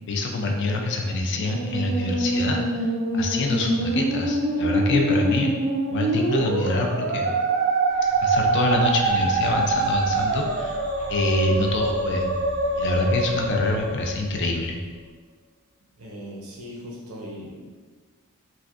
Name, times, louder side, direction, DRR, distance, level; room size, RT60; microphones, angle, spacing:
voice 1, 0.1-2.9 3.1-5.5 5.9-7.4 8.2-10.8 11.1-12.3 12.8-14.8, left 2 dB, 55° left, 2 dB, 0.4 m, -25 dB
Musical instrument, 1.3-14.7, right 2 dB, 50° right, 0.4 m, -25 dB
sound 1, 7.9-15.1, right 1 dB, 20° left, 0.7 m, -43 dB
voice 2, 16.0-17.6, equal, 85° right, -2 dB, 0.7 m, -38 dB
3.2 x 2.6 x 2.4 m, 1.5 s
head